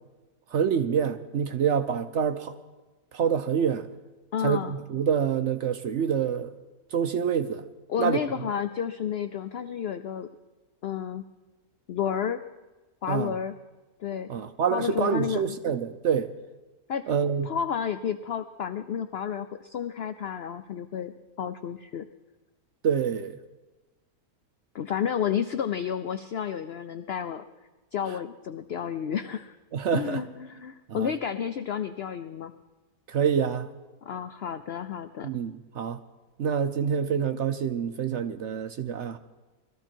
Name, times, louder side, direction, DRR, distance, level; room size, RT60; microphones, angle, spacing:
voice 1, 0.5-2.5 3.1-3.9 4.4-6.5 6.9-7.6 8.0-8.2 13.1-13.3 14.3-16.3 17.1-17.5 22.8-23.4 29.7-30.2 30.9-31.1 33.1-33.7 35.2-36.0 36.4-39.2, right 7 dB, 60° right, 0.8 m, -26 dB
voice 2, 4.3-4.7 7.9-10.3 10.8-11.2 11.9-12.4 13.0-13.5 14.0-14.3 14.7-15.6 16.9-17.0 17.4-21.1 21.4-22.1 24.7-27.4 27.9-29.6 29.9-32.5 34.0-35.3, left 8 dB, 60° left, 0.6 m, -31 dB
21.0 x 14.0 x 4.5 m
omnidirectional pair, 1.6 m